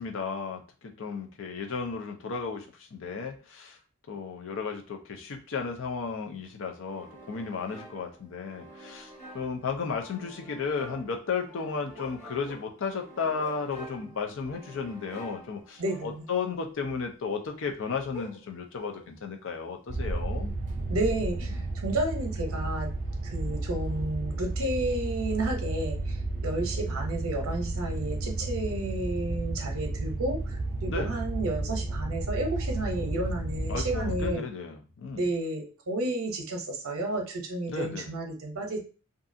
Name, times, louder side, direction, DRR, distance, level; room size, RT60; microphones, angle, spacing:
voice 1, 0.0-3.8 4.1-20.5 21.5-21.7 30.8-31.1 33.7-35.3 37.7-38.1, left 5 dB, 65° left, 4 dB, 0.5 m, -34 dB
sound 1, 6.9-16.4, right 1 dB, 35° left, 1.1 m, -49 dB
sound 2, 8.5-8.6 9.1-9.6 10.0-10.1 11.9-14.2 14.5-14.6 15.7-15.8 16.1-16.3 17.6-19.4 19.9-20.0, equal, 85° left, 0.9 m, -45 dB
voice 2, 15.8-16.2 20.9-21.5 21.8-22.9 23.2-26.0 26.4-34.4 35.2-38.8, right 1 dB, 80° right, 3 dB, 0.7 m, -31 dB
sound 3, 19.9-34.4, right 2 dB, 40° right, 0.4 m, -32 dB
2.6 x 2.4 x 2.5 m, 0.35 s
head